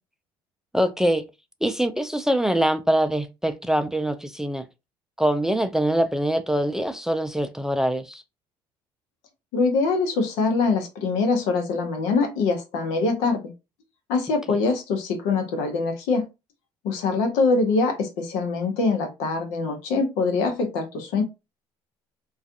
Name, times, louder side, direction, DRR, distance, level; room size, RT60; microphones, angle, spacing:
voice 1, 0.7-1.3 1.6-4.7 5.2-8.2, right 1 dB, 5° right, 0.3 m, -23 dB
voice 2, 9.5-13.5 14.1-16.3 16.8-21.2, left 4 dB, 80° left, 0.8 m, -23 dB
2.4 x 2.3 x 2.6 m
supercardioid pair, 75°, 12 cm